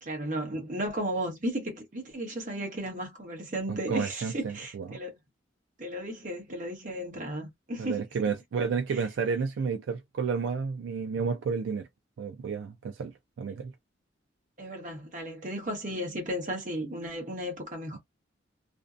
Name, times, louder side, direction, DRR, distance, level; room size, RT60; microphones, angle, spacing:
voice 1, 0.0-5.2 5.8-8.1 8.9-9.0 14.6-18.0, right 1 dB, 40° right, 1.0 m, -34 dB
voice 2, 3.7-5.0 7.8-11.9 12.2-13.7 17.9-18.0, right 5 dB, 75° right, 0.3 m, -31 dB
2.6 x 2.1 x 2.4 m
head